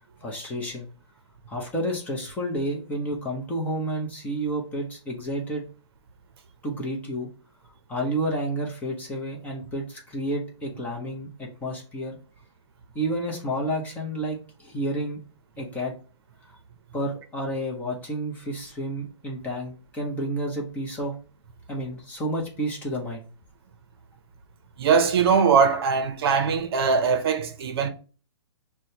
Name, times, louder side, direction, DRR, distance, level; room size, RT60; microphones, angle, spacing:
voice 1, 0.2-0.9 1.5-5.6 6.6-7.3 7.9-12.2 12.9-15.2 15.6-15.9 16.9-21.1 21.7-23.3, right 1 dB, 10° left, 0.7 m, -30 dB
voice 2, 24.8-27.9, right 6 dB, 55° right, 0.7 m, -21 dB
6.0 x 2.2 x 2.8 m
hypercardioid pair, 150°, 15 cm